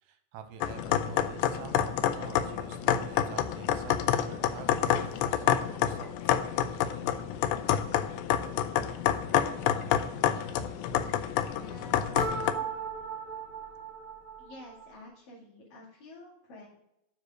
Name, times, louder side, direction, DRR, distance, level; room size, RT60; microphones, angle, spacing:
voice 1, 0.0-6.4, right 7 dB, 80° right, 7 dB, 2.5 m, -47 dB
sound 1, 0.6-12.5, left 10 dB, 85° left, 1.8 m, -28 dB
voice 2, 11.4-12.7 14.4-16.7, left 1 dB, 70° left, -9 dB, 4.0 m, -50 dB
sound 2, 12.1-15.1, right 3 dB, 55° right, 1.5 m, -37 dB
7.2 x 4.8 x 6.4 m, 0.84 s
omnidirectional pair, 4.1 m